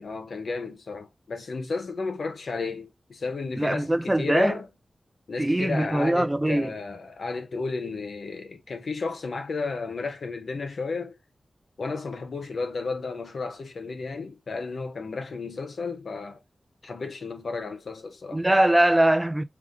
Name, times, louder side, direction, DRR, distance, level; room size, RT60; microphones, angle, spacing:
voice 1, 0.0-4.7 5.3-11.2 11.8-16.4 16.8-18.4, left 4 dB, 80° left, 0.9 m, -33 dB
voice 2, 3.6-4.6 5.4-6.7 18.3-19.4, right 1 dB, 15° right, 0.4 m, -22 dB
4.9 x 2.1 x 3.6 m
wide cardioid pair, 65°, 0 cm